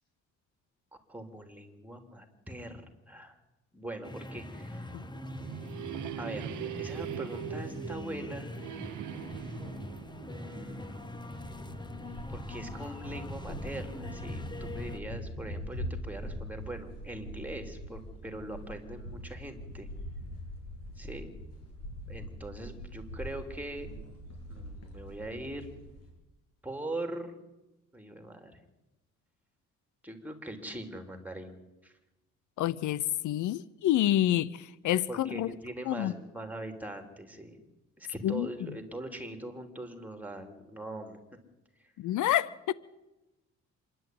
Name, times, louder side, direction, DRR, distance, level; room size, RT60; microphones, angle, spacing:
voice 1, 1.1-2.8 3.1-3.4 3.7-4.9 6.2-8.6 10.2-11.1 12.3-19.9 21.0-21.3 22.1-24.0 24.5-25.7 26.6-27.3 27.9-28.6 30.0-31.9 35.1-37.6 38.0-41.2 41.8-41.9, right 1 dB, 5° right, 3.5 m, -42 dB
sound 1, 4.0-15.0, left 1 dB, 15° left, 1.6 m, -42 dB
sound 2, 4.9-11.6, right 12 dB, 75° right, 0.7 m, -42 dB
sound 3, 9.3-9.4 9.6-9.7 10.0-26.1, equal, 55° left, 7.5 m, -43 dB
voice 2, 32.6-35.5 35.9-36.1 38.2-38.7 42.0-42.7, left 13 dB, 75° left, 0.7 m, -28 dB
26.0 x 11.0 x 9.4 m
cardioid pair, 90°, 30 cm